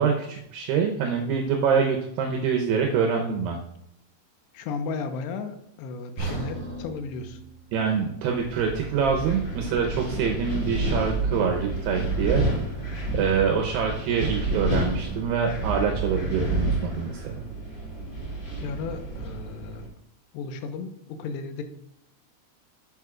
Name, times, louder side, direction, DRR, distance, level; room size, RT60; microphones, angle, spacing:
voice 1, 0.0-3.6 7.7-12.5 13.1-17.5, right 6 dB, 75° right, 2 dB, 2.8 m, -25 dB
voice 2, 4.5-7.4 18.6-19.8 20.3-21.6, left 5 dB, 80° left, 7 dB, 3.0 m, -34 dB
sound 1, 6.2-10.2 10.6-10.8 11.3-11.4, right 3 dB, 35° right, 4.3 m, -39 dB
Wind, 8.3-19.9, right 2 dB, 25° left, 3.2 m, -29 dB
12.5 x 8.0 x 2.4 m, 0.78 s
omnidirectional pair, 5.0 m